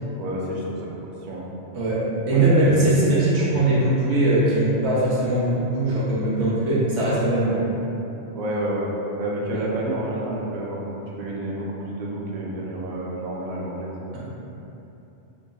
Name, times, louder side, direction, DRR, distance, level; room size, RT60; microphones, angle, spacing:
voice 1, 0.2-0.9 1.2-1.5 2.3-3.0 3.4-3.5 7.4-7.6 8.3-8.9 9.2-13.9, right 1 dB, 55° right, -4 dB, 0.5 m, -29 dB
voice 2, 1.7-7.6 9.5-9.7, right 1 dB, 85° right, -7 dB, 1.2 m, -21 dB
4.9 x 2.4 x 2.2 m, 2.9 s
omnidirectional pair, 1.2 m